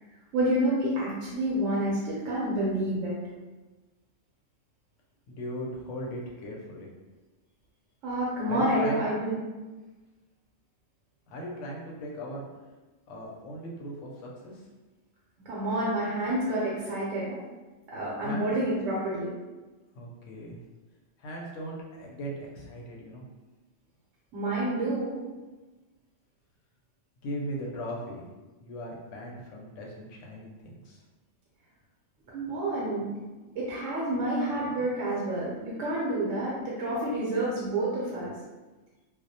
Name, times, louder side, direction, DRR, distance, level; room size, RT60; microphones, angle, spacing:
voice 1, 0.3-3.1 8.0-9.4 15.5-17.4 17.9-19.3 24.3-25.2 32.3-33.1 33.5-38.3, right 1 dB, 80° right, -6 dB, 0.9 m, -28 dB
voice 2, 5.3-6.9 8.4-9.0 11.3-12.4 13.1-14.6 18.2-18.5 19.9-20.6 21.2-23.2 27.2-28.2 28.6-31.0, equal, 75° left, -2 dB, 0.9 m, -38 dB
2.3 x 2.0 x 2.6 m, 1.2 s
omnidirectional pair, 1.3 m